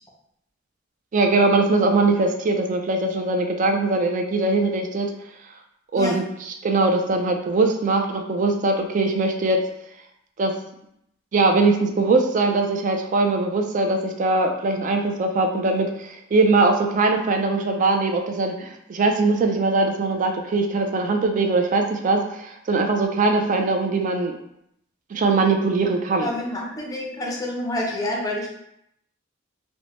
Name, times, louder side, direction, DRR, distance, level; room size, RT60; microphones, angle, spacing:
voice 1, 1.1-5.1 5.9-6.2 6.6-9.6 10.4-10.5 11.3-24.3 25.1-26.3, right 3 dB, 40° right, 4 dB, 0.3 m, -21 dB
voice 2, 26.2-28.5, left 1 dB, 20° left, -2 dB, 0.5 m, -28 dB
3.0 x 2.1 x 2.9 m, 0.77 s
head